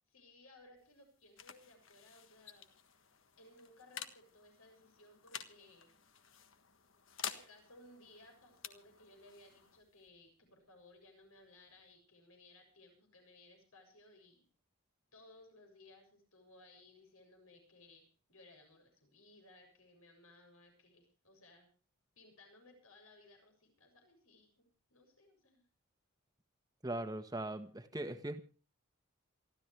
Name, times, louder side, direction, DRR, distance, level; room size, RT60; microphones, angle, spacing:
voice 1, 0.1-2.6 3.4-5.9 7.2-14.5 15.1-18.0 18.3-21.7 22.2-25.6, left 2 dB, 75° left, 4 dB, 7.5 m, -61 dB
sound 1, 0.6-11.9, left 8 dB, 60° left, 1.5 m, -51 dB
voice 2, 26.8-28.4, right 1 dB, 15° right, 8 dB, 1.4 m, -40 dB
28.0 x 13.0 x 3.4 m, 0.35 s
head